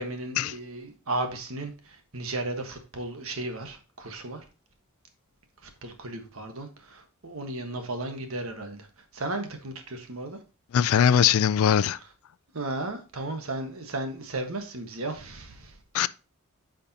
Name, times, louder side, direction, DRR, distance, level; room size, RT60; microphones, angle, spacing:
voice 1, 0.0-4.4 5.6-8.9 9.1-10.4 12.5-15.8, right 2 dB, 70° right, 1.3 m, -35 dB
voice 2, 10.7-12.0 15.9-16.1, left 8 dB, 75° left, 0.4 m, -21 dB
9.0 x 5.2 x 2.8 m
head